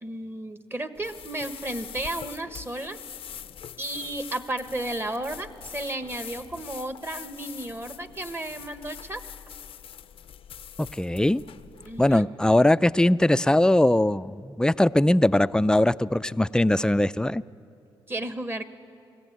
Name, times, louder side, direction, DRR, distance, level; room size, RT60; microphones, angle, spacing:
voice 1, 0.0-3.0 3.8-9.2 11.8-12.3 18.1-18.6, right 1 dB, 25° right, 10 dB, 1.2 m, -33 dB
sound 1, 0.9-12.2, left 9 dB, 65° left, 0.5 m, -43 dB
voice 2, 10.8-11.4 12.0-17.4, left 1 dB, 10° left, 16 dB, 0.4 m, -21 dB
20.5 x 14.5 x 9.3 m, 2.6 s
supercardioid pair, 60°, 10 cm